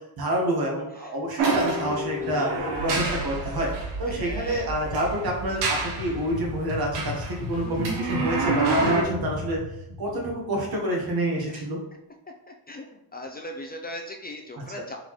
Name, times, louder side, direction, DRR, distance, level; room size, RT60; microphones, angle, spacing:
voice 1, 0.2-2.5 2.8-3.7 4.0-9.6 10.0-11.8 14.6-14.7, right 1 dB, 60° right, -1 dB, 1.3 m, -28 dB
sound 1, 1.4-3.9 4.9-6.2 6.7-9.0, right 3 dB, 90° right, 1.0 m, -27 dB
sound 2, 1.5-10.9, left 2 dB, 65° left, 0.9 m, -35 dB
voice 2, 2.2-2.6 4.1-4.8 11.5-11.7 12.5-12.9 13.1-15.0, left 1 dB, 25° left, 2 dB, 0.4 m, -39 dB
4.0 x 3.7 x 3.0 m, 0.83 s
cardioid pair, 100°, 41 cm